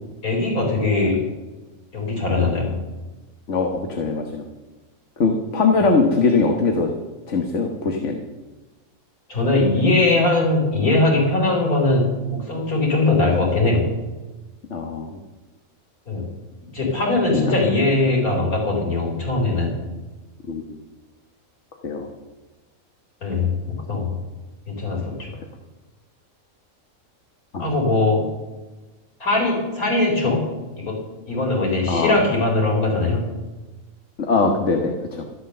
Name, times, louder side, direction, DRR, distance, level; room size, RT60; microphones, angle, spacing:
voice 1, 0.2-1.2 1.9-2.7 9.3-13.9 16.1-16.3 16.7-19.7 23.2-24.1 24.7-25.3 27.6-28.2 29.2-30.4 30.9-31.0 31.2-33.3, left 2 dB, 80° left, -1 dB, 4.7 m, -20 dB
voice 2, 3.5-4.4 5.2-6.9 7.3-8.3 14.7-15.1 17.3-17.6 20.5-20.8 21.8-22.1 27.5-27.6 31.9-32.2 34.2-35.2, left 4 dB, 55° left, 3 dB, 1.6 m, -21 dB
13.5 x 11.5 x 6.7 m, 1.2 s
omnidirectional pair, 1.5 m